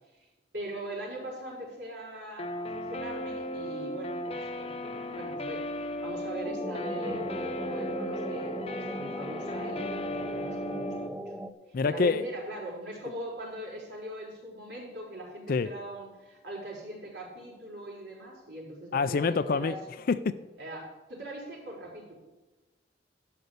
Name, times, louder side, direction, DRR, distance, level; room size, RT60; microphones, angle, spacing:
voice 1, 0.5-11.2 11.7-19.8 20.6-22.1, right 1 dB, 75° right, -3 dB, 4.3 m, -41 dB
Guitar, 2.4-11.1, left 1 dB, 35° left, 0.8 m, -36 dB
sound 1, 6.4-11.5, equal, 5° right, 0.7 m, -38 dB
voice 2, 11.7-12.2 15.5-15.7 18.9-19.8 20.1-20.4, left 5 dB, 55° left, 12 dB, 0.4 m, -26 dB
12.0 x 5.3 x 8.3 m, 1.1 s
head